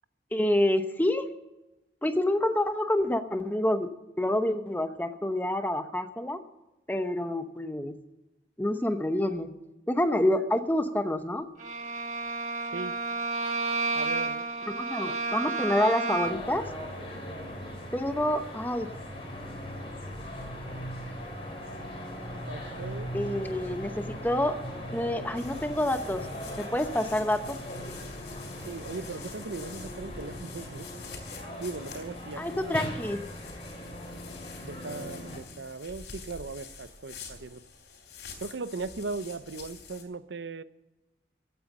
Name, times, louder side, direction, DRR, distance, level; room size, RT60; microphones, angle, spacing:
voice 1, 0.3-1.3 2.0-6.4 6.9-7.9 8.6-9.5 9.9-11.5 14.7-16.7 17.9-18.9 23.1-24.6 24.9-26.3 26.6-27.6 32.4-33.2, left 1 dB, 10° left, 8 dB, 0.8 m, -28 dB
Bowed string instrument, 11.6-16.6, right 3 dB, 40° right, 1.7 m, -31 dB
voice 2, 13.9-14.5 22.5-23.1 28.6-31.0 31.6-32.7 34.6-37.6 38.4-40.6, right 3 dB, 85° right, 14 dB, 0.7 m, -38 dB
sound 1, 16.2-35.4, equal, 30° left, 3.8 m, -39 dB
sound 2, 25.4-40.0, left 5 dB, 70° left, 3.6 m, -47 dB
15.5 x 9.1 x 7.4 m, 1.0 s
head